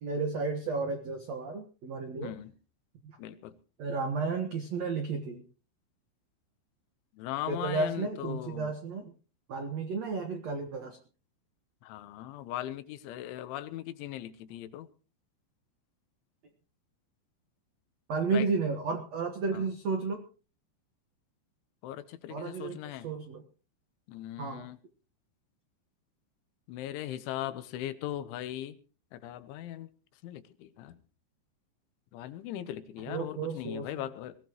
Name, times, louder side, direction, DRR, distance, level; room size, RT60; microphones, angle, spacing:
voice 1, 0.0-2.3 3.0-3.2 3.8-5.4 7.5-9.1 9.5-11.0 18.1-20.2 22.3-23.4 24.4-24.7 33.1-33.9, right 4 dB, 85° right, 5 dB, 1.4 m, -32 dB
voice 2, 2.2-2.5 3.2-3.5 7.1-8.8 11.8-14.9 18.3-18.5 19.5-19.6 21.8-23.1 24.1-24.8 26.7-28.8 29.1-29.9 30.2-31.0 32.1-34.4, left 12 dB, 85° left, 13 dB, 3.4 m, -39 dB
21.5 x 16.0 x 3.1 m, 0.36 s
omnidirectional pair, 5.4 m